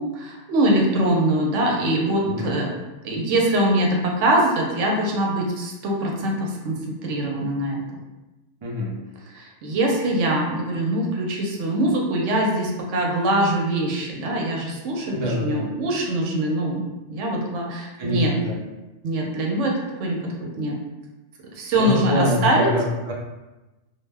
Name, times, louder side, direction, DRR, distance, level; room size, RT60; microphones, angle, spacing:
voice 1, 0.0-2.7 3.0-7.8 9.3-16.8 17.1-18.3 19.0-20.8 21.5-22.7, right 1 dB, 90° right, -1 dB, 0.9 m, -23 dB
voice 2, 8.6-9.0 15.1-15.7 18.0-18.6 21.7-23.1, left 1 dB, 40° right, -4 dB, 0.4 m, -25 dB
2.4 x 2.1 x 3.3 m, 1.1 s
omnidirectional pair, 1.2 m